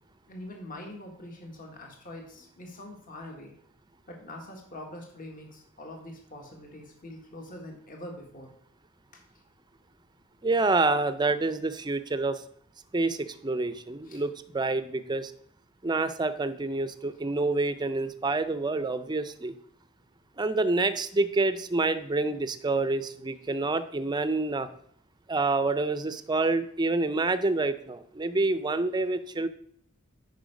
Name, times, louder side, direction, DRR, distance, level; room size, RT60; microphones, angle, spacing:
voice 1, 0.3-3.5 4.1-8.5 9.1-9.2 14.1-14.2, left 1 dB, 40° left, 1 dB, 1.6 m, -44 dB
voice 2, 10.4-12.4 12.9-15.3 15.8-19.5 20.4-24.7 25.3-29.5, right 3 dB, 20° right, 12 dB, 0.5 m, -27 dB
9.1 x 5.5 x 5.0 m, 0.64 s
head